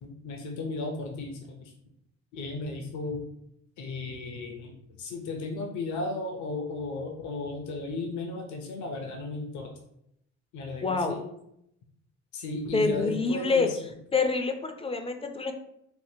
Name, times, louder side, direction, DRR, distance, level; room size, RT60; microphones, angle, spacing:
voice 1, 0.0-1.7 2.3-3.2 3.8-9.7 10.5-11.2 12.3-13.8, left 3 dB, 70° left, 2 dB, 0.6 m, -35 dB
voice 2, 10.8-11.2 12.7-13.7 14.1-15.5, left 4 dB, 20° left, 6 dB, 0.4 m, -26 dB
3.7 x 2.4 x 2.7 m, 0.78 s
cardioid pair, 90°, 30 cm